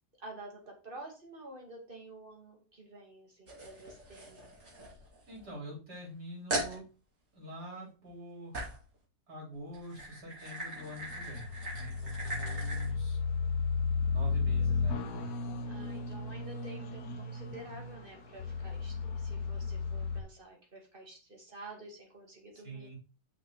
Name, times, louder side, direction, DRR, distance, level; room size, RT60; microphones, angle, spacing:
voice 1, 0.2-4.5 15.7-22.9, right 2 dB, 30° right, 0 dB, 2.4 m, -50 dB
sound 1, 3.5-5.5 5.9-6.0 6.5-6.8 8.5-8.9 9.7-12.9, right 2 dB, 50° right, 2.9 m, -40 dB
voice 2, 5.3-6.9 7.3-8.7 9.3-13.2 14.1-15.3 22.6-22.9, right 1 dB, 75° right, -3 dB, 4.5 m, -44 dB
sound 2, 10.8-20.2, left 4 dB, 60° left, 1.4 m, -34 dB
6.3 x 6.1 x 3.9 m, 0.33 s
omnidirectional pair, 1.8 m